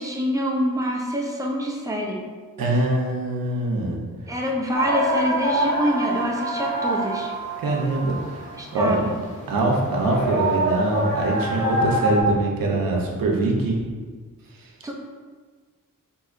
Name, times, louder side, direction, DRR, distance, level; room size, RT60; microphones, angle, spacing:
voice 1, 0.0-2.2 4.3-7.3 8.6-9.1 14.8-14.9, equal, 10° right, -1 dB, 0.4 m, -25 dB
voice 2, 2.6-4.0 7.6-9.0 9.5-13.8 14.6-14.7, right 2 dB, 90° right, -1 dB, 0.6 m, -23 dB
sound 1, 4.7-12.2, right 1 dB, 20° left, 0.7 m, -25 dB
3.9 x 2.7 x 2.4 m, 1.5 s
wide cardioid pair, 110°, 33 cm